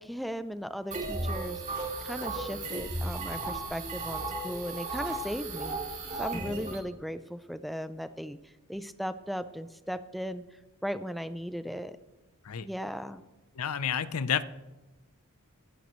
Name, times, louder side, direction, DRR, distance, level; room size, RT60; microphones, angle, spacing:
voice 1, 0.0-1.6 2.0-5.8 6.2-12.0 12.6-13.2, equal, ahead, 11 dB, 0.4 m, -37 dB
sound 1, 0.9-6.8, right 2 dB, 35° right, 2.5 m, -35 dB
voice 2, 13.6-14.4, left 7 dB, 80° left, 14 dB, 0.6 m, -30 dB
20.5 x 10.5 x 3.1 m, 1.1 s
head